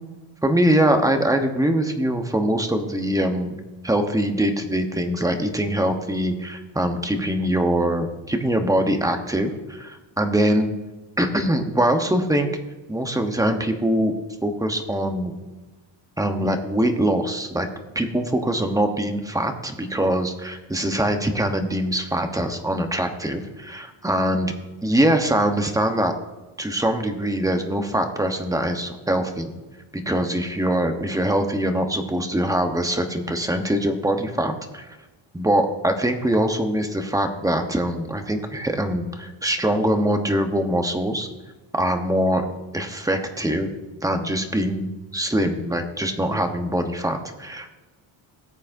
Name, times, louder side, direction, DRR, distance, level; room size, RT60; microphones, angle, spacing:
voice 1, 0.4-10.7 11.2-12.5 12.9-14.1 14.4-15.4 16.2-17.7 17.9-24.5 24.8-26.1 26.6-29.5 29.9-35.0 35.3-41.3 41.7-42.4 42.7-43.7 44.0-47.7, right 1 dB, 5° right, 5 dB, 1.1 m, -23 dB
18.5 x 8.4 x 2.7 m, 1.2 s
cardioid pair, 125°, 48 cm